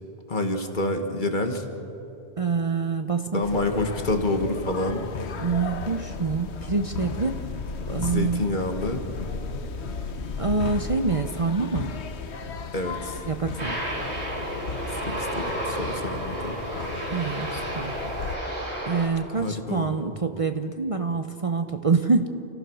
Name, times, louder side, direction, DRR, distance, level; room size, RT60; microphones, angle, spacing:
voice 1, 0.3-1.7 3.3-5.1 7.9-9.0 12.7-13.2 14.9-16.6 19.4-20.0, left 2 dB, 45° left, 5 dB, 1.7 m, -28 dB
voice 2, 2.4-3.4 5.4-7.4 7.9-8.5 10.4-11.9 13.3-13.8 17.1-17.9 18.9-22.3, right 4 dB, 35° right, 7 dB, 0.7 m, -26 dB
sound 1, 3.4-18.4, left 4 dB, 80° left, 1.2 m, -35 dB
Aircraft, 13.6-19.1, right 1 dB, 85° right, 3.7 m, -32 dB
29.0 x 15.0 x 6.3 m, 3.0 s
omnidirectional pair, 1.1 m